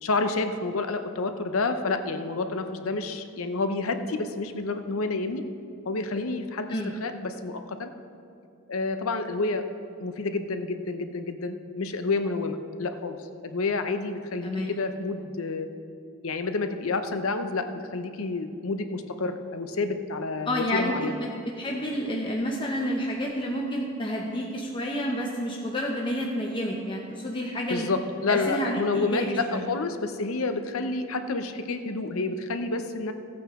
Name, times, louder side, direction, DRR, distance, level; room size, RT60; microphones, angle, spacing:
voice 1, 0.0-5.4 5.9-7.9 8.7-9.6 10.0-13.2 13.4-15.7 16.2-17.7 17.9-21.2 27.7-33.1, left 3 dB, 85° left, 8 dB, 0.8 m, -29 dB
voice 2, 14.4-14.8 20.5-21.3 21.6-27.9 28.3-29.7, equal, 25° left, -2 dB, 0.8 m, -29 dB
15.5 x 8.7 x 3.7 m, 2.5 s
head